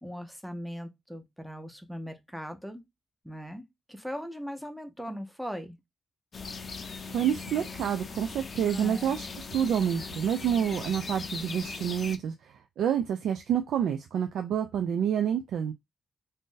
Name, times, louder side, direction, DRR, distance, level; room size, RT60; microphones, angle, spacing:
voice 1, 0.0-2.8 3.2-5.8 8.7-9.1, equal, ahead, 0.7 m, -39 dB
sound 1, 6.3-12.2, left 4 dB, 45° left, 0.5 m, -39 dB
voice 2, 7.1-12.3 12.8-15.7, right 9 dB, 85° right, 0.3 m, -28 dB
2.6 x 2.5 x 3.7 m
cardioid pair, 85°, 0 cm